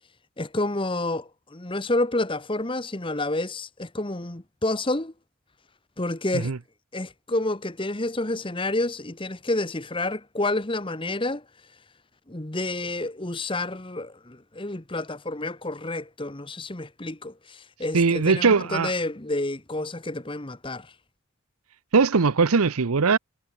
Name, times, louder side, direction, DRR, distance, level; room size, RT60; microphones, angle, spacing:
voice 1, 0.4-5.1 6.0-6.5 6.9-11.4 12.3-20.9, left 2 dB, 25° left, 1.2 m, -29 dB
voice 2, 17.9-18.9 21.9-23.2, right 4 dB, 85° right, 0.8 m, -20 dB
head